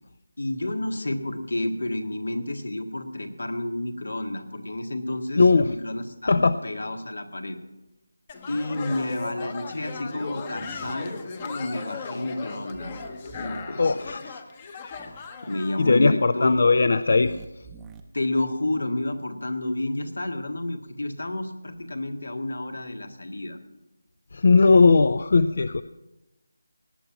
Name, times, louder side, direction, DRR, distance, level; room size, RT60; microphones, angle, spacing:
voice 1, 0.4-7.6 8.5-11.2 11.4-13.0 13.4-14.1 15.4-16.9 18.1-23.6, left 1 dB, 75° left, 7 dB, 1.7 m, -30 dB
voice 2, 5.4-5.7 6.3-6.5 13.8-14.2 15.8-17.3 24.3-25.8, left 4 dB, 50° left, 13 dB, 0.4 m, -18 dB
sound 1, 8.3-15.8, left 5 dB, 20° left, 0.9 m, -37 dB
sound 2, 10.5-10.9 12.7-13.6 14.9-15.3 17.1-18.0, right 5 dB, 5° right, 0.6 m, -45 dB
18.5 x 8.8 x 5.8 m, 1.0 s
figure-of-eight pair, 170°, 0 cm